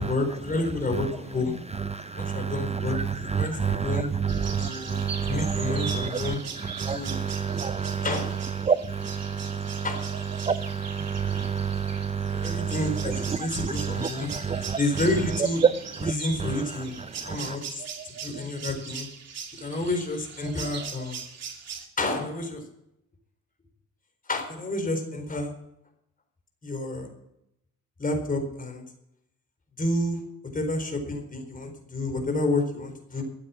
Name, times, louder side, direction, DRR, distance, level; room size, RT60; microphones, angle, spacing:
voice 1, 0.0-1.5 2.2-4.1 4.6-6.4 6.9-7.2 7.9-8.3 9.8-10.0 12.3-14.3 14.8-15.6 16.0-16.9 17.2-19.1 19.5-21.2 22.0-22.6 24.3-25.5 26.6-27.1 28.0-28.8 29.8-30.2 30.5-33.2, left 2 dB, 30° left, 4 dB, 4.3 m, -29 dB
voice 2, 1.8-8.0 8.6-9.9 10.4-14.8 16.0-16.1 16.4-16.6 17.1-17.6, right 6 dB, 20° right, 12 dB, 0.5 m, -29 dB
sound 1, 4.3-21.9, right 6 dB, 55° right, 2.6 m, -40 dB
14.0 x 8.7 x 7.3 m, 0.80 s
cardioid pair, 90°, 30 cm